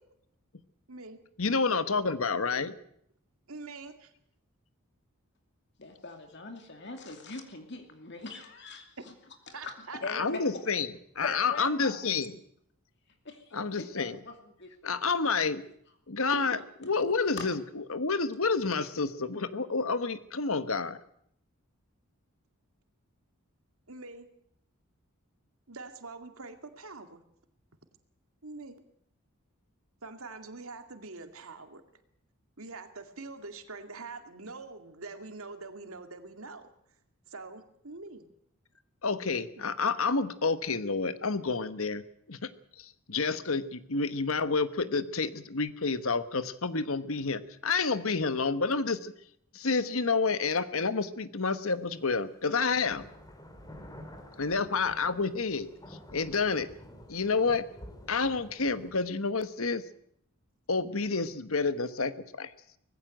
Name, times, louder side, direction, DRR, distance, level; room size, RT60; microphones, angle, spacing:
voice 1, 0.9-1.2 3.5-4.1 9.5-10.0 23.9-24.3 25.7-27.2 28.4-28.8 30.0-31.8 32.6-36.6 37.3-38.3, right 3 dB, 75° right, 7 dB, 2.2 m, -44 dB
voice 2, 1.4-2.7 10.1-10.9 11.1-12.3 13.5-14.2 14.8-15.6 16.1-16.6 16.8-17.6 17.9-21.0 39.0-42.5 42.8-49.1 49.5-53.0 54.4-55.7 56.1-56.7 57.1-57.6 58.1-59.8 60.7-62.5, left 4 dB, 70° left, 13 dB, 1.3 m, -29 dB
voice 3, 5.8-9.1 9.5-10.5 11.2-12.0 13.2-14.7 16.3-16.6 17.0-17.1 17.3-17.5 18.6-18.9, left 3 dB, 50° left, 5 dB, 2.6 m, -42 dB
sound 1, 51.7-51.8 52.6-59.0, equal, 15° left, 2.9 m, -50 dB
19.0 x 15.5 x 9.1 m, 0.69 s
head